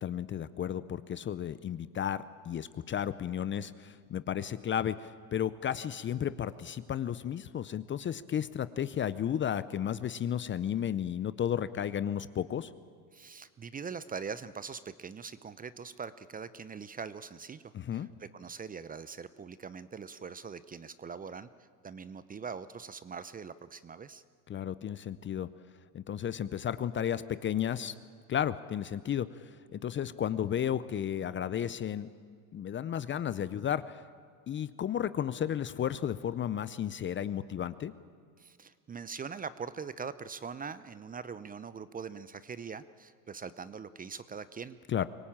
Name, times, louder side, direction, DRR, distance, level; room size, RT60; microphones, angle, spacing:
voice 1, 0.0-12.7 17.7-18.1 24.5-25.5 25.9-27.9 28.3-32.1 32.5-34.0 34.5-37.9 44.9-45.1, left 9 dB, 25° left, 15 dB, 0.6 m, -33 dB
voice 2, 13.1-21.5 21.8-24.2 38.4-44.8, right 6 dB, 20° right, 15 dB, 0.6 m, -42 dB
24.5 x 17.5 x 8.8 m, 2.1 s
supercardioid pair, 100°, 45 cm